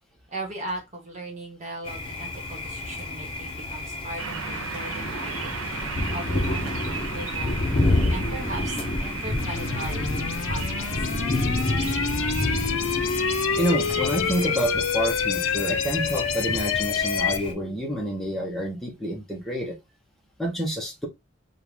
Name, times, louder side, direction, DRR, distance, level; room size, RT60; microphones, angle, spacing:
voice 1, 0.3-5.6 6.1-7.6 8.1-10.1 10.4-10.9, right 2 dB, 35° right, 1.3 m, -38 dB
Thunder, 1.8-17.5, left 2 dB, 25° left, 0.9 m, -29 dB
sound 1, 4.2-14.7, right 6 dB, 90° right, 0.6 m, -37 dB
sound 2, 9.4-17.4, left 6 dB, 90° left, 0.5 m, -27 dB
voice 2, 13.6-19.8 20.4-21.1, equal, ahead, 1.0 m, -28 dB
4.5 x 2.4 x 3.4 m
head